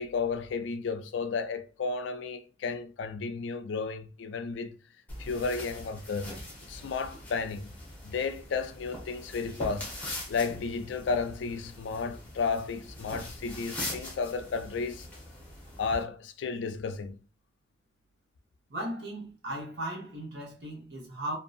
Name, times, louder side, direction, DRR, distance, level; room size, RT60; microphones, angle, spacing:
voice 1, 0.0-4.8 5.2-6.3 6.6-7.7 8.0-9.9 10.3-15.1 15.8-17.2, left 4 dB, 75° left, 0.3 m, -33 dB
sound 1, 5.1-16.0, left 1 dB, 10° left, 0.7 m, -42 dB
voice 2, 18.7-21.4, right 1 dB, 60° right, 1.0 m, -37 dB
2.6 x 2.2 x 2.4 m
head